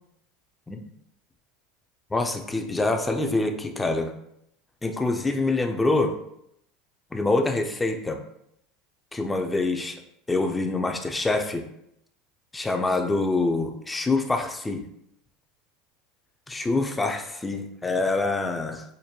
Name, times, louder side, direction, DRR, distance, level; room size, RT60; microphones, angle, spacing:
voice 1, 2.1-4.1 4.8-6.2 7.1-8.2 9.1-10.0 10.3-11.6 12.5-14.8 16.5-18.8, left 2 dB, 15° left, 4 dB, 0.5 m, -25 dB
5.1 x 2.1 x 2.8 m, 0.76 s
hypercardioid pair, 85°, 0 cm